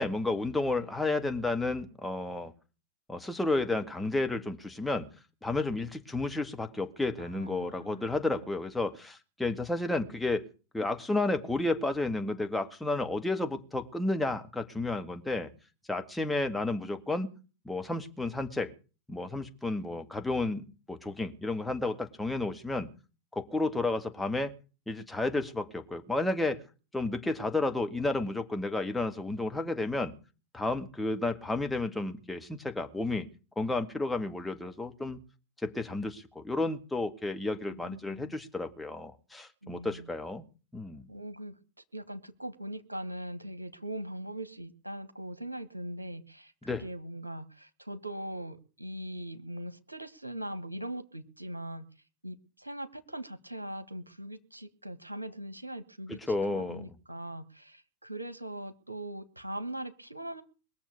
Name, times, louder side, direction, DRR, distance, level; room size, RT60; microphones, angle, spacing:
voice 1, 0.0-2.5 3.1-5.1 5.4-10.4 10.7-15.5 15.9-17.3 17.7-18.7 19.1-22.9 23.3-24.5 24.9-26.6 26.9-30.1 30.5-33.3 33.6-35.2 35.6-40.5 40.7-41.1 46.6-46.8 56.3-56.9, left 2 dB, 5° left, 5 dB, 1.9 m, -31 dB
voice 2, 7.2-8.2 37.7-38.3 39.6-40.1 41.1-41.5 41.9-51.8 52.2-60.4, right 1 dB, 90° right, 10 dB, 1.4 m, -41 dB
21.5 x 7.2 x 8.4 m, 0.35 s
figure-of-eight pair, 90°, 0 cm